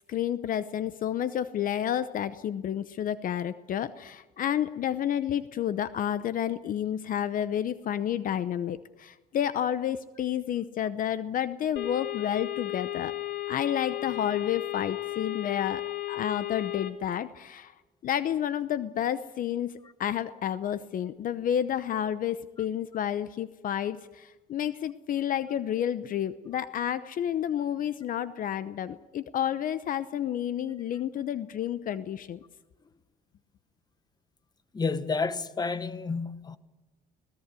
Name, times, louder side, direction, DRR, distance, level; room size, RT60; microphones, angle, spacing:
voice 1, 0.1-13.1 13.5-15.8 16.1-17.7 18.0-19.7 20.0-32.4, left 10 dB, 55° left, 0.8 m, -30 dB
sound 1, 11.8-16.9, left 15 dB, 70° left, 1.9 m, -34 dB
voice 2, 34.7-36.6, left 4 dB, 25° left, 1.2 m, -30 dB
25.0 x 17.5 x 8.3 m
cardioid pair, 110°, 17 cm